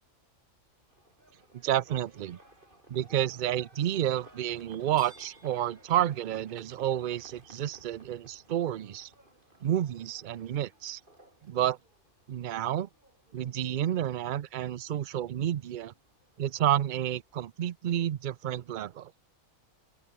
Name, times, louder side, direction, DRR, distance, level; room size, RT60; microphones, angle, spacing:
Livestock farm animals working animals, 0.9-17.4, right 1 dB, 35° right, 5.8 m, -58 dB
voice 1, 1.5-2.4 2.9-9.1 9.6-11.0 11.4-11.8 12.3-12.9 13.3-15.9 16.4-19.1, right 11 dB, 60° right, 0.5 m, -30 dB
open air
omnidirectional pair, 1.4 m